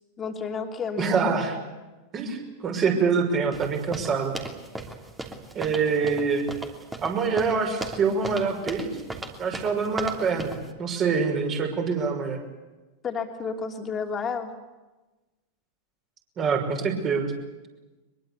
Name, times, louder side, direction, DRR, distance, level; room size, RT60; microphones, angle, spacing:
voice 1, 0.2-1.3 13.0-14.5, left 5 dB, 20° left, 4 dB, 3.2 m, -31 dB
voice 2, 1.0-1.6 2.1-4.3 5.5-6.5 7.0-8.9 9.4-12.4 16.4-17.3, right 5 dB, 30° right, 3 dB, 6.0 m, -25 dB
sound 1, 3.5-10.7, right 2 dB, 10° right, 3.0 m, -37 dB
24.0 x 22.5 x 8.4 m, 1.1 s
figure-of-eight pair, 90°, 0 cm